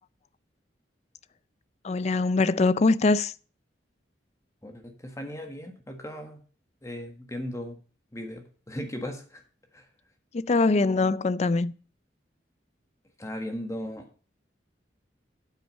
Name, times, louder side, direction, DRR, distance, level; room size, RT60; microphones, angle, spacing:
voice 1, 1.8-3.3 10.3-11.7, left 3 dB, 35° left, 0.4 m, -23 dB
voice 2, 4.6-6.4 6.8-7.8 8.1-9.4 9.7-9.9 13.2-14.1, equal, 15° left, 1.5 m, -37 dB
9.1 x 8.0 x 5.3 m
head